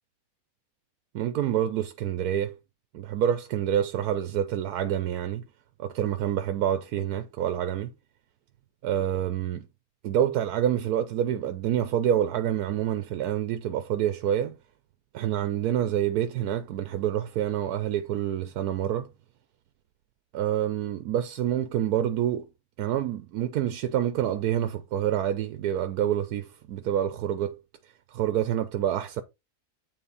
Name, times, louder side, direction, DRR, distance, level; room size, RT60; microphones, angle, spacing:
voice 1, 1.1-2.6 2.9-5.4 5.8-7.9 8.8-9.7 10.0-14.6 15.1-19.1 20.3-22.5 22.8-27.6 28.1-29.2, right 10 dB, 85° right, 1.2 m, -27 dB
8.9 x 4.0 x 4.0 m
omnidirectional pair, 1.6 m